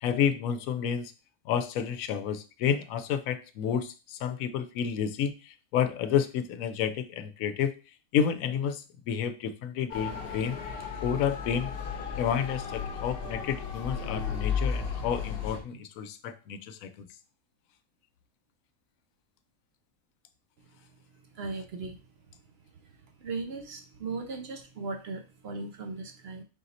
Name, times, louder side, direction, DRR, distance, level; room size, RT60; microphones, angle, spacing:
voice 1, 0.0-1.1 1.4-7.8 8.1-10.6 11.0-11.7 12.2-17.1, left 8 dB, 75° left, 10 dB, 1.0 m, -30 dB
Motor vehicle (road) / Siren, 9.9-15.6, left 6 dB, 50° left, 0.9 m, -34 dB
voice 2, 21.3-22.0 23.2-26.4, right 3 dB, 60° right, 4 dB, 0.7 m, -37 dB
3.9 x 2.7 x 4.1 m, 0.32 s
omnidirectional pair, 1.5 m